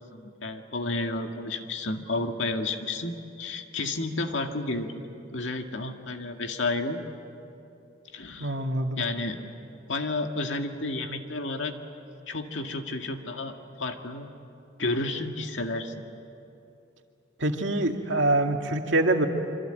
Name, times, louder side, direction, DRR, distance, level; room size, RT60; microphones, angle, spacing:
voice 1, 0.1-4.9 5.3-7.0 8.1-8.5 9.0-9.4 9.9-11.7 12.3-14.3 14.8-16.0, left 2 dB, 80° left, 4 dB, 2.0 m, -31 dB
voice 2, 8.4-9.0 17.4-19.3, right 2 dB, 75° right, 3 dB, 2.1 m, -25 dB
25.5 x 25.5 x 9.1 m, 2.8 s
head